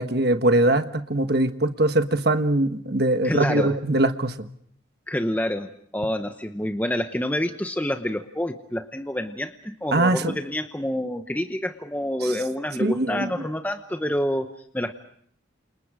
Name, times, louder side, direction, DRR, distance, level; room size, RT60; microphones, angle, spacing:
voice 1, 0.0-4.5 9.9-10.3 12.8-13.3, right 1 dB, 55° right, 8 dB, 1.4 m, -22 dB
voice 2, 3.2-3.7 5.1-14.9, left 1 dB, 10° left, 7 dB, 0.9 m, -28 dB
29.0 x 28.5 x 5.0 m, 0.64 s
head